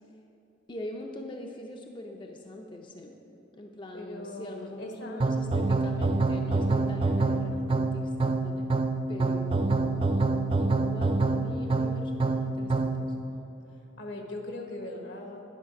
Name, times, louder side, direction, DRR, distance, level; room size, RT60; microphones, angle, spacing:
voice 1, 0.7-3.2 3.5-8.7 9.1-10.2 10.6-13.1, left 1 dB, 25° left, 2 dB, 0.5 m, -42 dB
voice 2, 3.9-5.2 14.0-15.4, left 1 dB, 80° left, 2 dB, 1.3 m, -39 dB
sound 1, 5.2-13.1, right 3 dB, 30° right, 0.3 m, -26 dB
11.0 x 5.7 x 5.8 m, 2.9 s
head